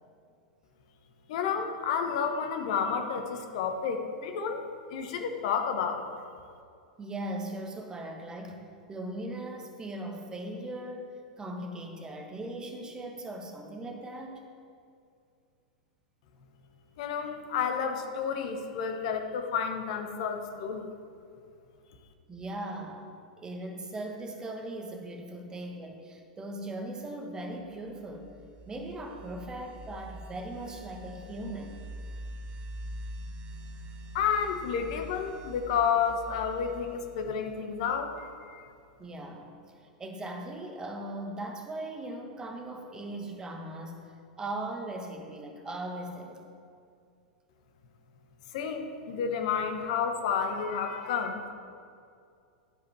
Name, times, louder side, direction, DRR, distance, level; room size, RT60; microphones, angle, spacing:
voice 1, 1.3-4.6 4.9-6.1 17.0-20.9 34.1-38.7 48.5-51.5, left 6 dB, 55° left, 5 dB, 1.1 m, -30 dB
voice 2, 7.0-14.5 22.3-23.1 23.4-28.3 28.7-31.8 39.0-39.5 39.8-44.0 44.4-46.4, right 1 dB, 15° right, 3 dB, 1.3 m, -39 dB
sound 1, 27.9-38.4, right 1 dB, 35° right, 0.8 m, -44 dB
11.0 x 5.1 x 6.1 m, 2.4 s
figure-of-eight pair, 95°, 4 cm